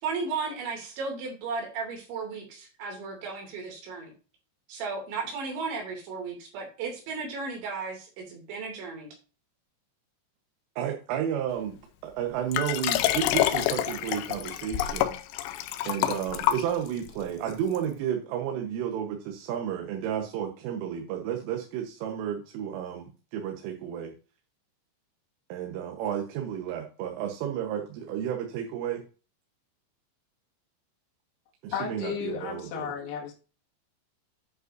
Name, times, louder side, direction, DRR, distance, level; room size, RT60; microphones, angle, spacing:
voice 1, 0.0-4.1 4.7-9.1, right 4 dB, 70° right, 1 dB, 4.8 m, -35 dB
voice 2, 10.8-15.2 15.9-24.1 25.5-29.0 31.6-32.9, right 9 dB, 85° right, 3 dB, 3.7 m, -32 dB
Liquid, 12.5-17.1 17.8-17.9, left 13 dB, 85° left, 2.5 m, -27 dB
voice 3, 31.7-33.3, left 7 dB, 65° left, -4 dB, 3.8 m, -33 dB
10.5 x 7.9 x 2.6 m, 0.34 s
omnidirectional pair, 5.6 m